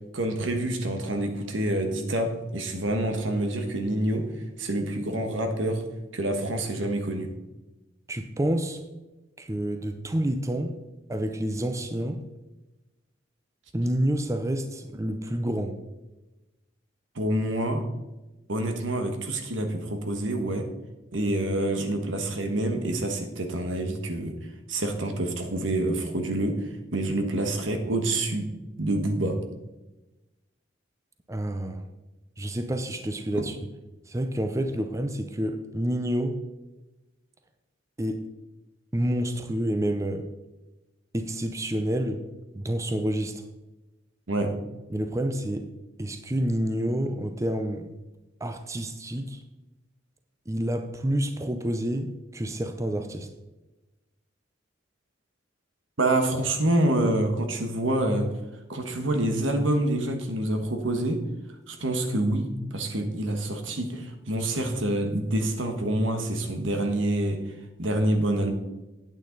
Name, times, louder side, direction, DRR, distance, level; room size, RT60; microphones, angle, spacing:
voice 1, 0.1-4.3 4.6-5.8 6.1-7.3 17.1-17.8 18.5-20.7 21.1-24.4 24.7-26.6 26.9-28.5 28.8-29.4 33.3-33.4 44.3-44.5 56.0-58.3 58.7-61.2 61.7-67.4 67.8-68.5, right 1 dB, 85° right, 6 dB, 1.3 m, -27 dB
voice 2, 8.1-8.8 9.4-10.8 11.1-12.2 13.7-15.8 31.3-31.8 32.4-33.7 34.1-36.4 38.0-38.2 38.9-40.3 41.1-42.3 42.5-43.4 44.9-45.7 46.0-47.9 48.4-49.4 50.5-53.3, right 1 dB, 15° right, 7 dB, 0.5 m, -28 dB
9.0 x 8.7 x 3.9 m, 1.1 s
head